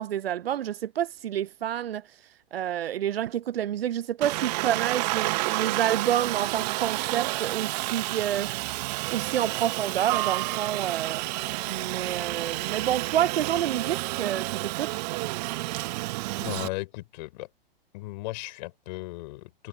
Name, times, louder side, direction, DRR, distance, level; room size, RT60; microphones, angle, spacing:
voice 1, 0.0-2.0 2.5-8.6 9.1-11.3 11.7-14.9, right 11 dB, 80° right, 0.5 m, -28 dB
Aircraft, 4.2-16.7, right 21 dB, 45° right, 1.1 m, -30 dB
voice 2, 16.4-17.5 17.9-19.7, left 20 dB, 50° left, 5.4 m, -36 dB
hypercardioid pair, 115°, 29 cm